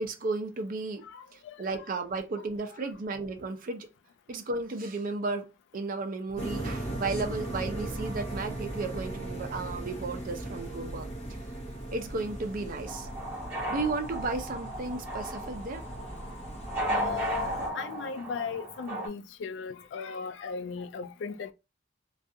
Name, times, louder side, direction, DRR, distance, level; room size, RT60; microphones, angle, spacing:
voice 1, 0.0-3.9 4.3-11.1 11.9-13.1 13.7-15.8, right 3 dB, 45° right, 0.5 m, -34 dB
voice 2, 1.0-1.7 16.9-21.5, left 6 dB, 70° left, 0.3 m, -37 dB
sound 1, 6.4-17.7, right 1 dB, 35° left, 0.7 m, -38 dB
sound 2, 12.9-19.1, right 1 dB, 10° right, 1.1 m, -35 dB
2.3 x 2.3 x 2.6 m
head